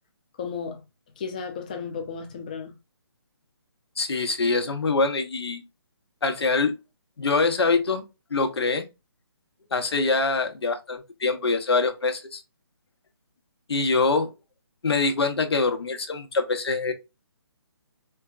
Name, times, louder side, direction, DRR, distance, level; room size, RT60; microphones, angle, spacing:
voice 1, 0.4-0.8 1.2-2.8, left 6 dB, 20° left, 0.5 m, -34 dB
voice 2, 4.0-5.6 6.2-6.8 7.2-8.0 8.3-8.9 9.7-12.4 13.7-14.3 14.8-16.9, left 3 dB, 80° left, 1.0 m, -24 dB
4.3 x 2.3 x 2.3 m
hypercardioid pair, 170°, 13 cm